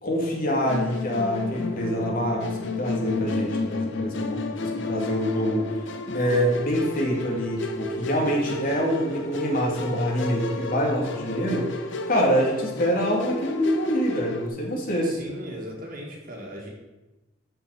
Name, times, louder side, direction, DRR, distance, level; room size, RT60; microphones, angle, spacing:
voice 1, 0.0-5.7 6.1-11.7 12.1-15.1, equal, 50° left, -1 dB, 2.4 m, -25 dB
Musical instrument, 0.7-14.5, left 2 dB, 65° left, 0.8 m, -32 dB
voice 2, 15.0-16.7, equal, 45° right, -1 dB, 1.8 m, -38 dB
13.0 x 5.2 x 4.9 m, 1.1 s
head